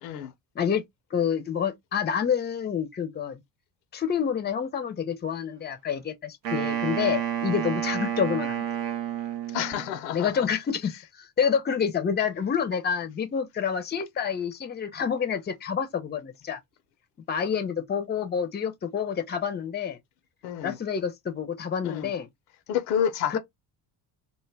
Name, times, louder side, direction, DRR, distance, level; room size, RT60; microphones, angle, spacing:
voice 1, 0.0-0.3 9.5-10.5 20.4-20.8 21.8-22.1 22.7-23.4, left 9 dB, 75° left, 0.7 m, -29 dB
voice 2, 1.1-3.4 3.9-8.6 10.1-16.6 17.3-20.0 20.6-22.3 23.3-23.4, left 7 dB, 20° left, 0.6 m, -28 dB
Wind instrument woodwind instrument, 6.4-9.9, right 9 dB, 90° right, 0.7 m, -30 dB
2.1 x 2.1 x 3.3 m
hypercardioid pair, 60°, 50 cm